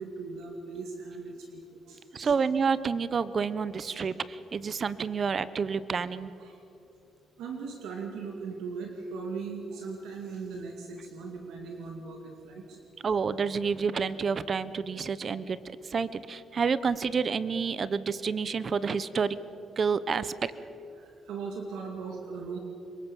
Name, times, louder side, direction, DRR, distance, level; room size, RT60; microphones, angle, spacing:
voice 1, 0.0-2.3 6.4-6.6 7.4-12.8 16.6-16.7 21.0-22.6, right 4 dB, 85° right, 2 dB, 2.5 m, -39 dB
voice 2, 2.1-6.3 13.0-19.4 19.8-20.5, right 5 dB, 45° right, 15 dB, 1.0 m, -29 dB
26.0 x 23.0 x 7.3 m, 3.0 s
cardioid pair, 90°, 0 cm